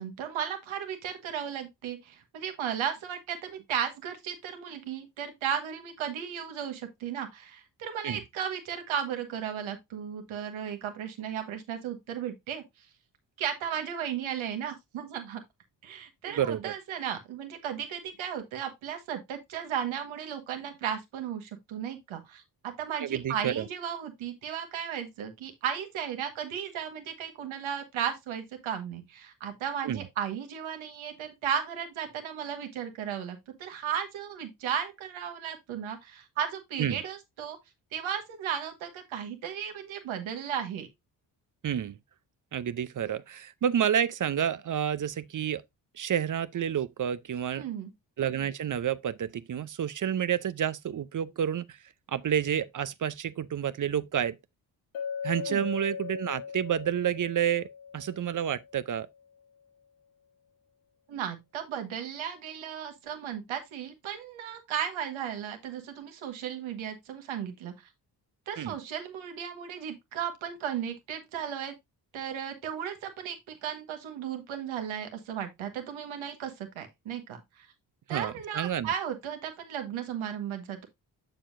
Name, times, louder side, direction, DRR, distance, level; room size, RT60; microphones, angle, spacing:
voice 1, 0.0-12.9 13.4-15.4 15.8-37.6 37.9-40.9 47.6-47.9 55.5-55.7 61.1-67.7 68.5-71.7 72.1-77.7 78.1-80.9, right 8 dB, 75° right, 1.6 m, -35 dB
voice 2, 16.3-16.7 23.0-23.7 29.8-30.0 36.8-37.0 41.6-42.0 42.5-45.6 45.9-47.6 48.2-51.8 52.1-54.4 55.2-57.7 57.9-59.1 68.6-68.8 78.1-78.9, right 9 dB, 40° right, 0.6 m, -29 dB
Chink clink, 54.9-59.0, left 6 dB, 80° left, 1.5 m, -38 dB
7.2 x 7.0 x 2.6 m
hypercardioid pair, 40°, 48 cm